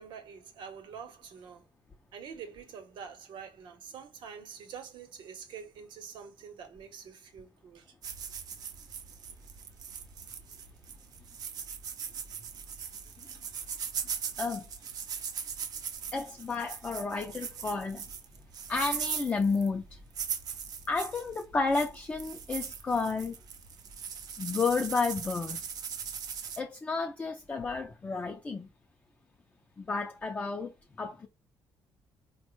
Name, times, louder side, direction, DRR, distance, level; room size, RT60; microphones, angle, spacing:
voice 1, 0.0-1.6 2.1-7.9, right 7 dB, 75° right, 0.8 m, -46 dB
sound 1, 8.0-26.6, right 7 dB, 50° right, 0.5 m, -40 dB
voice 2, 16.1-18.0 18.7-20.0 20.9-23.3 24.4-25.6 26.6-28.7 29.8-30.7 31.0-31.3, left 4 dB, 20° left, 0.4 m, -31 dB
4.1 x 2.1 x 3.0 m
cardioid pair, 170°, 8 cm